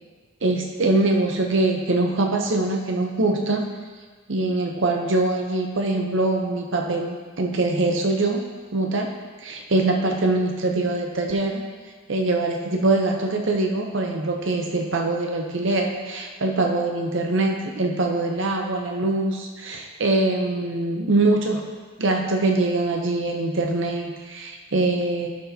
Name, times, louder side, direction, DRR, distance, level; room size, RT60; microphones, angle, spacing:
voice 1, 0.4-3.6 4.3-8.4 8.7-9.1 9.4-11.6 12.1-21.6 22.0-25.3, right 2 dB, 60° right, 2 dB, 0.7 m, -23 dB
12.0 x 6.2 x 2.8 m, 1.4 s
head